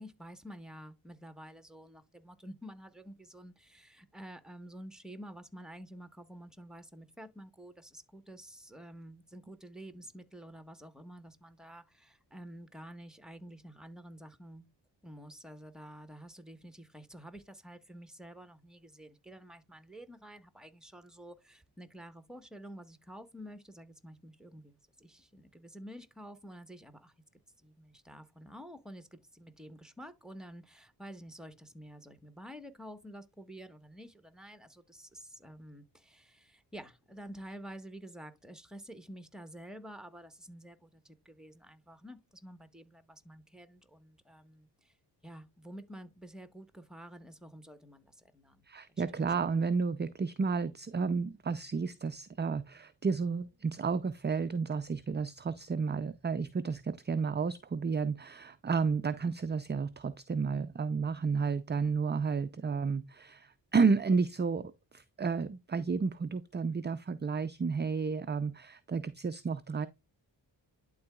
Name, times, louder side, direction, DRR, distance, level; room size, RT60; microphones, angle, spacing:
voice 1, 0.0-14.6 15.0-27.1 27.6-45.0 45.2-48.6 49.0-49.1 49.4-49.6, equal, ahead, 1.2 m, -50 dB
voice 2, 48.7-69.9, right 5 dB, 25° right, 0.4 m, -32 dB
11.5 x 3.9 x 2.3 m
cardioid pair, 60°, 45 cm